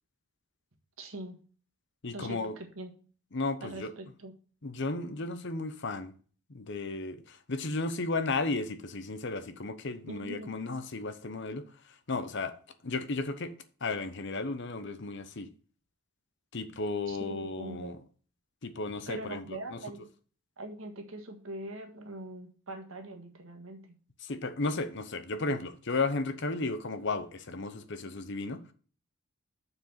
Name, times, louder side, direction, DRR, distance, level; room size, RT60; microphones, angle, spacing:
voice 1, 1.0-1.4 2.1-2.9 3.6-4.3 10.1-10.5 17.1-18.0 19.1-20.1 20.6-23.9, right 1 dB, 70° right, 1.7 m, -42 dB
voice 2, 2.0-2.6 3.3-3.9 4.6-6.1 6.5-12.6 12.8-13.5 13.8-15.5 16.5-18.0 18.6-19.8 24.2-28.7, left 3 dB, 55° left, 0.9 m, -34 dB
6.7 x 4.8 x 6.8 m
head